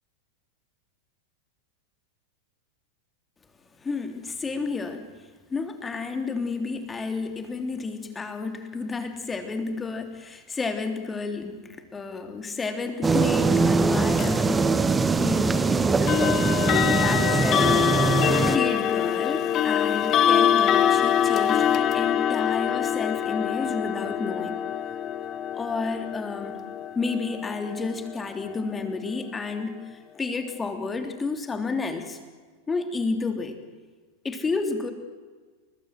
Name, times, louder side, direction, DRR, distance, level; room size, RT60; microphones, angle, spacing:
voice 1, 3.8-14.7 15.2-17.9 18.4-24.6 25.5-26.6 26.9-32.2 32.7-33.6 34.2-34.9, left 4 dB, 15° left, 6 dB, 3.1 m, -31 dB
sound 1, 13.0-18.6, right 4 dB, 15° right, 1.3 m, -22 dB
sound 2, 14.2-14.4 16.1-28.9, left 10 dB, 30° left, 1.5 m, -24 dB
30.0 x 20.5 x 7.7 m, 1.4 s
figure-of-eight pair, 90°, 0 cm